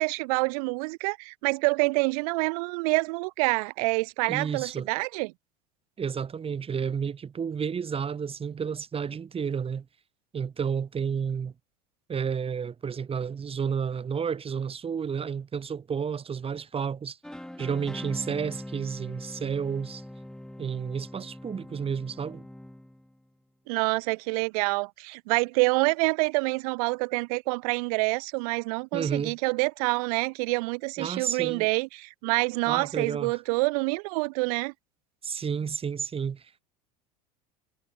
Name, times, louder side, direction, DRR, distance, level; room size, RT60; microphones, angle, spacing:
voice 1, 0.0-5.3 23.7-34.7, right 28 dB, 65° right, 2.1 m, -27 dB
voice 2, 4.3-4.9 6.0-9.9 10.3-11.5 12.1-17.2 17.6-20.0 20.6-22.4 28.9-29.4 31.0-31.7 32.7-33.4 35.2-36.6, right 6 dB, 30° right, 7.0 m, -31 dB
sound 1, 17.2-23.2, left 1 dB, 5° left, 4.3 m, -42 dB
hypercardioid pair, 85°, 20 cm